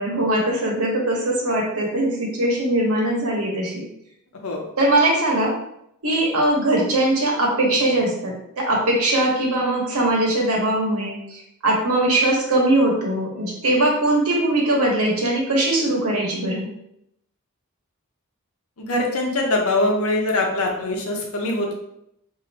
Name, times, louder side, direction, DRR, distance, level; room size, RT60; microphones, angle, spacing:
voice 1, 0.0-3.8 4.8-5.6 6.0-16.7, right 1 dB, 85° right, -1 dB, 1.1 m, -21 dB
voice 2, 18.8-21.7, left 2 dB, 75° left, 1 dB, 0.8 m, -23 dB
4.1 x 2.7 x 2.8 m, 0.76 s
head